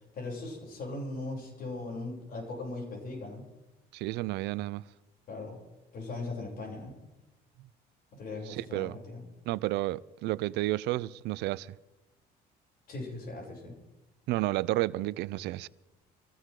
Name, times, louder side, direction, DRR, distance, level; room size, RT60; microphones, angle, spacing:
voice 1, 0.1-3.4 5.3-5.6 5.9-6.9 8.1-9.2 12.9-13.7, left 2 dB, 60° left, 7.5 m, -39 dB
voice 2, 3.9-4.8 8.5-9.0 9.5-11.8 14.3-15.7, right 18 dB, 85° right, 0.5 m, -31 dB
23.5 x 16.0 x 3.8 m
cardioid pair, 110°, 17 cm